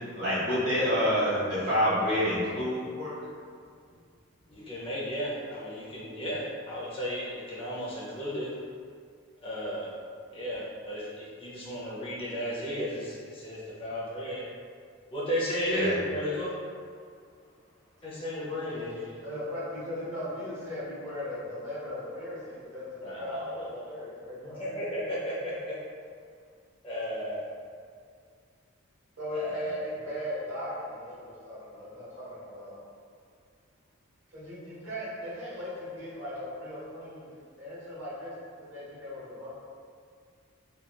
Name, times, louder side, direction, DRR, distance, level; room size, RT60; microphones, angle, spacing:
voice 1, 0.1-3.1 15.7-15.9, equal, 50° right, -12 dB, 1.3 m, -27 dB
voice 2, 4.5-8.5 9.4-9.9 10.3-14.4 15.1-16.5 18.0-19.0 23.0-23.5 24.6-25.8 26.8-27.5 29.3-29.7, equal, 25° left, -7 dB, 0.5 m, -34 dB
voice 3, 18.6-24.6 29.2-32.8 34.3-39.5, left 1 dB, 70° right, -10 dB, 1.2 m, -38 dB
2.9 x 2.3 x 2.3 m, 2.2 s
head